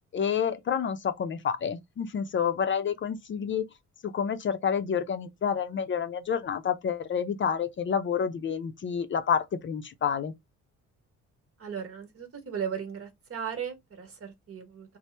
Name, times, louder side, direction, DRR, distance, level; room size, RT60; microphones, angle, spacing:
voice 1, 0.1-3.7 4.0-10.3, left 7 dB, 40° left, 0.5 m, -29 dB
voice 2, 11.6-15.0, right 7 dB, 50° right, 1.2 m, -37 dB
2.9 x 2.0 x 3.2 m
cardioid pair, 90°, 30 cm